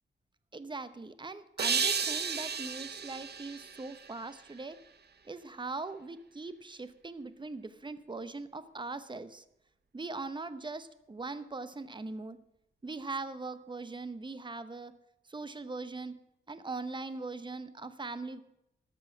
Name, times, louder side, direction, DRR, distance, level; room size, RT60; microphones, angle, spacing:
voice 1, 0.5-4.8 5.2-9.4 9.9-12.4 12.8-14.9 15.3-16.2 16.5-18.4, right 3 dB, 25° right, 13 dB, 0.8 m, -41 dB
sound 1, 1.6-4.7, right 6 dB, 55° right, 0.9 m, -33 dB
13.0 x 6.2 x 8.6 m, 0.83 s
wide cardioid pair, 95°, 20 cm